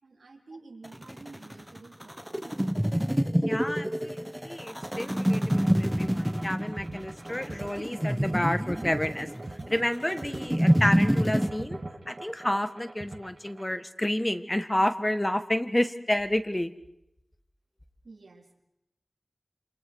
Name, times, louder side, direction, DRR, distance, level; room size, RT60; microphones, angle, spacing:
voice 1, 0.0-2.9 18.0-18.6, right 3 dB, 85° right, 1 dB, 4.1 m, -50 dB
sound 1, 0.8-11.5, equal, 5° right, 1.0 m, -27 dB
voice 2, 3.4-9.3 9.7-11.8 12.1-16.7, left 1 dB, 15° left, 10 dB, 1.6 m, -30 dB
sound 2, 4.8-13.7, right 2 dB, 50° right, 2.6 m, -42 dB
28.5 x 27.5 x 4.8 m, 0.83 s
wide cardioid pair, 65°, 0 cm